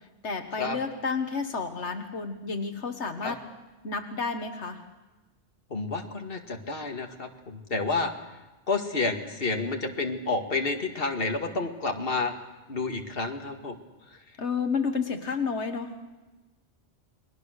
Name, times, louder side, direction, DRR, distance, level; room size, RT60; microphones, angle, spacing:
voice 1, 0.2-3.4 3.8-4.8 14.4-15.9, left 5 dB, 85° left, 6 dB, 1.8 m, -31 dB
voice 2, 5.7-8.1 8.7-12.4 12.7-13.8, left 3 dB, 55° left, 4 dB, 2.2 m, -30 dB
29.5 x 22.0 x 6.6 m, 1.1 s
omnidirectional pair, 1.1 m